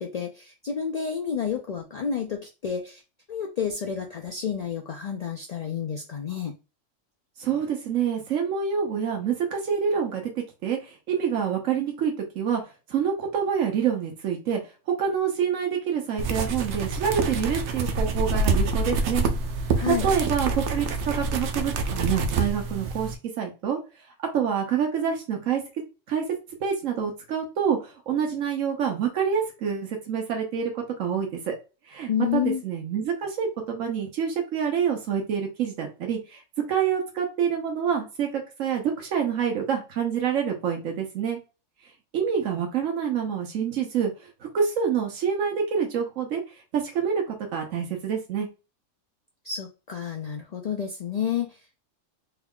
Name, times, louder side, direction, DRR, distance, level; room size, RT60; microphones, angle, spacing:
voice 1, 0.0-3.0 3.3-6.5 19.8-20.1 32.1-32.6 49.4-51.8, left 7 dB, 70° left, 2 dB, 0.3 m, -30 dB
voice 2, 7.4-10.2 10.6-12.6 12.9-14.6 15.0-19.2 20.0-23.8 24.3-25.6 26.1-26.2 26.6-31.5 31.9-36.4 36.7-41.4 42.1-44.3 44.5-46.4 46.7-48.5, right 7 dB, 90° right, 2 dB, 1.2 m, -27 dB
sound 1, 16.2-23.2, right 3 dB, 70° right, 0.8 m, -26 dB
3.6 x 3.5 x 2.3 m, 0.30 s
omnidirectional pair, 1.3 m